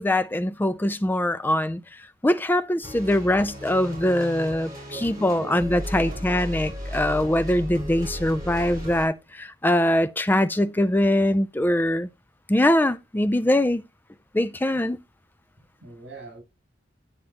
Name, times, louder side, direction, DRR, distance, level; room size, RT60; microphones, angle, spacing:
voice 1, 0.0-1.8 2.2-12.1 12.5-13.8 14.3-15.0, left 1 dB, 10° left, 0.4 m, -22 dB
sound 1, 2.8-9.1, equal, 20° right, 4.8 m, -35 dB
voice 2, 4.9-6.2 15.8-16.4, right 2 dB, 75° right, 6.4 m, -41 dB
9.6 x 8.7 x 2.9 m
head